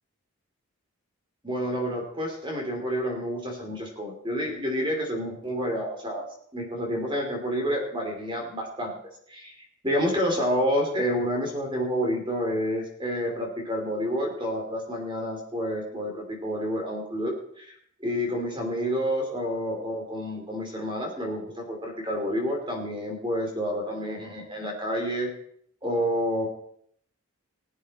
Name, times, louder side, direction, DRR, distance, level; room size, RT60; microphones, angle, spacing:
voice 1, 1.4-6.2 6.5-9.0 9.3-9.5 9.8-17.7 18.0-25.3 25.8-26.5, equal, 20° right, 1 dB, 2.9 m, -29 dB
20.0 x 8.4 x 4.2 m, 0.66 s
head